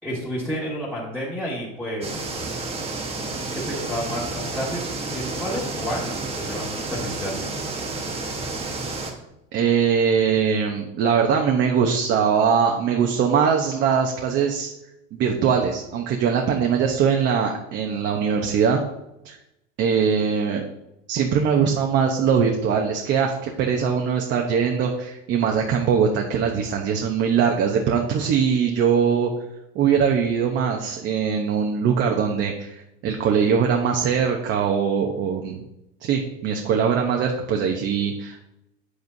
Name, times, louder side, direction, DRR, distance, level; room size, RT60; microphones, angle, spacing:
voice 1, 0.0-2.5 3.5-7.5, equal, 5° left, -9 dB, 1.7 m, -31 dB
sound 1, 2.0-9.1, right 3 dB, 20° right, 1.3 m, -30 dB
voice 2, 9.5-14.7 15.1-18.8 19.2-19.4 19.8-20.6 21.1-29.3 29.7-35.6 36.0-38.4, right 7 dB, 40° right, 2 dB, 0.8 m, -21 dB
8.7 x 8.0 x 2.7 m, 0.88 s
supercardioid pair, 145°, 30 cm